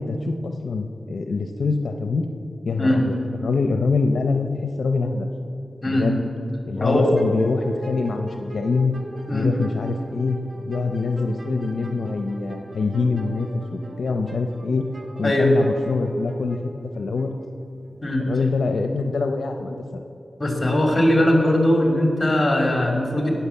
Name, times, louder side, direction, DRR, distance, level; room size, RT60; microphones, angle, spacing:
voice 1, 0.0-2.2 2.6-3.2 3.4-5.3 5.9-6.2 6.7-8.9 9.3-10.4 10.7-14.9 15.2-16.6 17.0-17.3 18.3-20.0, left 4 dB, 80° left, 5 dB, 0.6 m, -24 dB
voice 2, 6.8-7.1 9.3-9.5 15.2-15.5 18.0-18.3 20.4-23.3, left 1 dB, 30° left, 1 dB, 2.7 m, -20 dB
sound 1, 6.8-17.2, right 1 dB, 45° right, 1.4 m, -40 dB
17.5 x 5.8 x 7.0 m, 2.8 s
wide cardioid pair, 70°, 0 cm